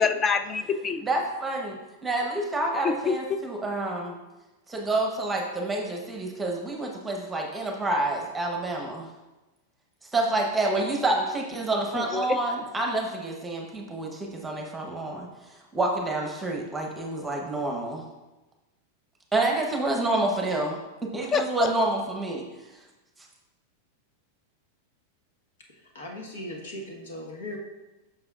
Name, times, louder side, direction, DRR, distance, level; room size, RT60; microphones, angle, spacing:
voice 1, 0.0-1.1 2.8-3.4 11.9-12.4 21.3-21.7, left 5 dB, 25° left, 10 dB, 0.5 m, -26 dB
voice 2, 1.0-1.8 2.0-4.2 4.7-9.1 10.1-15.3 15.7-18.0 19.3-20.8 21.1-22.4, right 2 dB, 10° right, 0 dB, 1.0 m, -28 dB
voice 3, 25.9-27.6, left 1 dB, 90° left, 0 dB, 1.4 m, -38 dB
9.4 x 6.4 x 2.5 m, 1.0 s
supercardioid pair, 135°, 0 cm